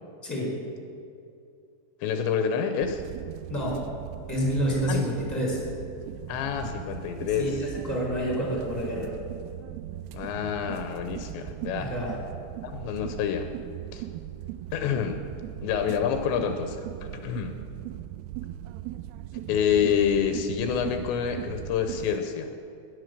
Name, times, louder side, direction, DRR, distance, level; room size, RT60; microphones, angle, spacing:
voice 1, 0.2-0.5 3.5-3.8 4.3-5.6 7.4-9.1 11.8-12.2, equal, 5° left, -2 dB, 3.8 m, -28 dB
voice 2, 2.0-3.0 4.9-5.1 6.3-7.5 10.1-11.9 12.6-13.5 13.9-14.1 14.7-15.2 15.6-17.6 19.5-22.5, left 8 dB, 80° left, 7 dB, 3.1 m, -27 dB
sound 1, 2.8-22.2, right 14 dB, 90° right, 2.3 m, -39 dB
19.5 x 10.5 x 6.7 m, 2.5 s
omnidirectional pair, 5.2 m